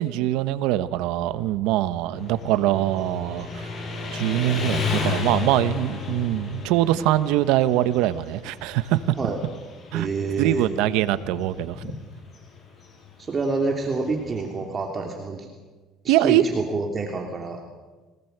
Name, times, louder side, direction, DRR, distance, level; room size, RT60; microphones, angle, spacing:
voice 1, 0.0-3.7 4.1-9.0 9.9-10.1 10.4-11.8 16.1-16.4, right 14 dB, 85° right, 14 dB, 1.1 m, -23 dB
Motorcycle, 2.1-14.8, left 5 dB, 40° left, 5.4 m, -34 dB
voice 2, 9.9-10.7 13.3-15.5 16.0-17.6, right 3 dB, 30° right, 1 dB, 2.9 m, -27 dB
24.0 x 19.0 x 8.1 m, 1.3 s
cardioid pair, 125°, 0 cm